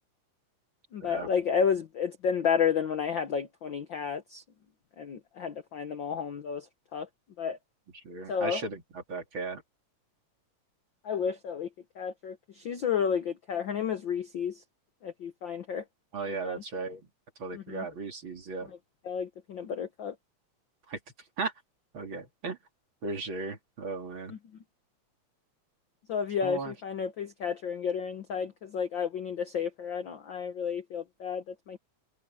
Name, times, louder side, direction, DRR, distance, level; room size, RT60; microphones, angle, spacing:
voice 1, 0.9-4.4 5.0-6.6 6.9-7.1 7.4-7.6 8.3-8.6 11.0-11.7 12.0-14.5 15.0-15.8 16.4-16.6 17.5-17.9 19.0-20.1 24.3-24.4 26.1-31.8, left 7 dB, 60° left, 1.3 m, -31 dB
voice 2, 8.0-9.6 16.1-17.0 17.4-18.7 20.9-21.0 21.4-21.5 21.9-22.6 23.0-24.3 26.4-26.7, right 3 dB, 40° right, 3.3 m, -36 dB
omnidirectional pair, 3.4 m